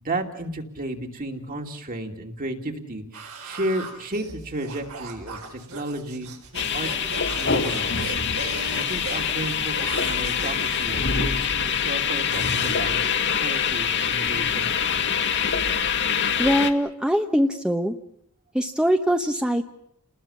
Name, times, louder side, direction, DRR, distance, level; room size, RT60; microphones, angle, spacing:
voice 1, 0.0-6.3 6.7-6.9 7.3-8.1 8.7-14.7, right 1 dB, 40° right, 4 dB, 2.8 m, -33 dB
sound 1, 3.1-10.6, right 4 dB, 80° right, 4.4 m, -39 dB
sound 2, 6.5-16.7, left 7 dB, 55° left, 1.9 m, -24 dB
voice 2, 16.4-18.0 18.5-19.6, equal, 5° right, 5 dB, 1.1 m, -22 dB
29.5 x 20.0 x 7.3 m, 0.72 s
head